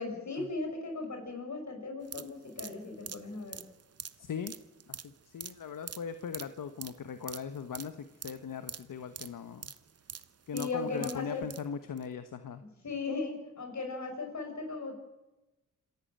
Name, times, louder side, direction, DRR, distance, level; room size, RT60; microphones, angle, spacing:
voice 1, 0.0-3.6 10.5-11.5 12.8-14.9, left 3 dB, 60° left, 4 dB, 6.5 m, -37 dB
sound 1, 2.0-11.7 12.0-12.1, right 7 dB, 50° right, 1.1 m, -45 dB
voice 2, 4.2-4.5 4.9-9.7 10.5-12.6, left 6 dB, 75° left, 10 dB, 1.3 m, -39 dB
26.5 x 14.0 x 9.1 m, 1.0 s
wide cardioid pair, 90°, 32 cm